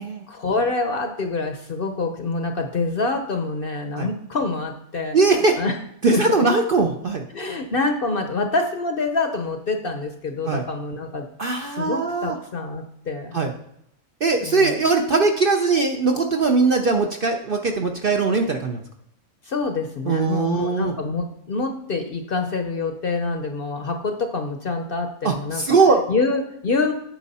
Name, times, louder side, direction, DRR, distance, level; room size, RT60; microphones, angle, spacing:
voice 1, 0.3-5.8 6.1-6.2 7.3-11.3 11.7-13.4 14.4-14.8 19.4-25.6 26.1-26.9, left 3 dB, 50° left, 5 dB, 0.8 m, -26 dB
voice 2, 5.1-5.6 6.0-7.2 10.5-10.6 11.4-12.4 13.3-13.5 14.2-18.8 20.1-20.9 25.2-26.0, right 4 dB, 50° right, 3 dB, 0.7 m, -20 dB
9.0 x 6.1 x 4.2 m, 0.75 s
omnidirectional pair, 1.5 m